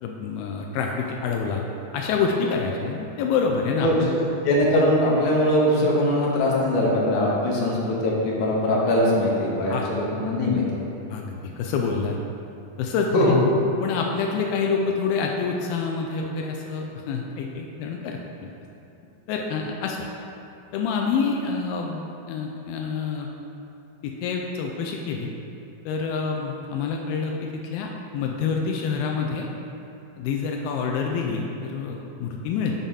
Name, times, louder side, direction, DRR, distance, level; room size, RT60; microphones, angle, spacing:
voice 1, 0.0-1.6 1.9-4.1 9.7-9.9 11.1-12.2 12.8-13.4 13.8-18.5 19.3-20.1 20.7-23.3 24.0-25.3 25.9-29.5 30.2-32.7, left 5 dB, 85° left, 1 dB, 2.3 m, -27 dB
voice 2, 3.8-4.2 4.4-10.8 13.1-13.3, left 1 dB, 70° left, -4 dB, 2.1 m, -21 dB
7.1 x 3.6 x 5.5 m, 2.9 s
omnidirectional pair, 4.1 m